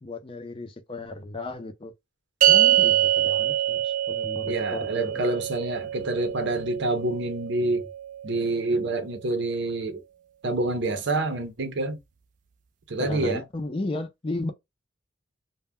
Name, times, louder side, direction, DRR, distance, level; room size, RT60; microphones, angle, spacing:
voice 1, 0.0-1.9 2.5-5.2 13.0-14.5, left 2 dB, 25° left, 0.5 m, -34 dB
sound 1, 2.4-8.9, right 12 dB, 40° right, 0.3 m, -25 dB
voice 2, 4.4-7.8 8.2-10.0 10.4-12.0 12.9-13.4, right 2 dB, 60° right, 0.7 m, -27 dB
2.2 x 2.2 x 3.4 m
head